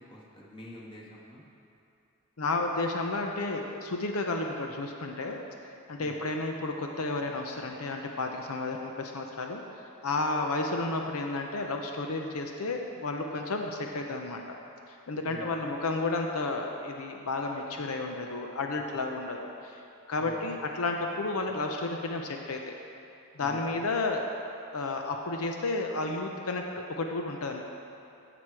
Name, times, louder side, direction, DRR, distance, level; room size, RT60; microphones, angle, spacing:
voice 1, 0.1-1.4 6.0-6.2 15.2-15.5 20.2-20.4 23.4-23.6, left 1 dB, 25° left, -4 dB, 1.6 m, -47 dB
voice 2, 2.4-5.4 5.9-9.6 10.0-14.6 14.9-19.8 20.1-22.7 23.4-24.2 24.7-27.6, left 3 dB, 75° left, 2 dB, 0.7 m, -32 dB
16.5 x 6.0 x 4.7 m, 2.7 s
head